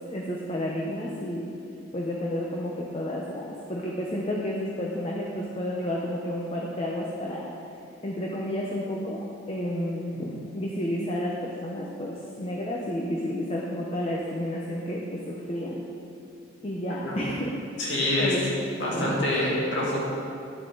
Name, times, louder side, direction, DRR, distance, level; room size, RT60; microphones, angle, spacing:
voice 1, 0.1-1.5 1.9-7.5 8.0-15.9 16.6-17.6 17.8-18.6 18.9-19.3, equal, 30° left, -2 dB, 0.8 m, -31 dB
voice 2, 17.8-18.4 18.8-20.0, left 1 dB, 65° left, -5 dB, 2.5 m, -26 dB
11.0 x 8.1 x 4.0 m, 2.6 s
head